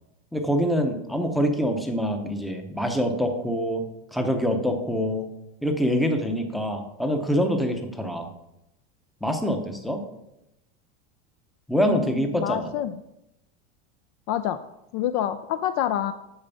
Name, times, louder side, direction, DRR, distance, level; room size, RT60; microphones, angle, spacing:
voice 1, 0.3-3.8 4.1-5.3 5.6-8.3 9.2-10.1 11.7-12.7, equal, ahead, 4 dB, 0.7 m, -25 dB
voice 2, 11.8-12.9 14.3-14.6 14.9-16.1, left 11 dB, 40° left, 11 dB, 0.4 m, -27 dB
8.8 x 5.1 x 6.9 m, 0.86 s
supercardioid pair, 165°, 32 cm